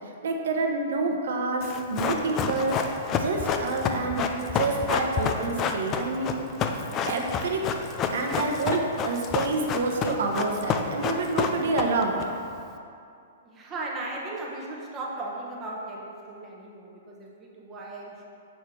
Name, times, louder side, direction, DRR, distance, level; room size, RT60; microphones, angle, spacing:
voice 1, 0.2-2.8 3.2-4.2 4.5-6.4 7.1-7.7 8.1-12.2, right 3 dB, 75° right, 2 dB, 0.9 m, -28 dB
Run, 1.6-12.2 12.5-12.6, left 6 dB, 25° left, 0.4 m, -28 dB
voice 2, 13.4-18.2, right 2 dB, 20° right, -3 dB, 1.1 m, -37 dB
6.5 x 3.4 x 6.0 m, 2.5 s
hypercardioid pair, 145°, 0 cm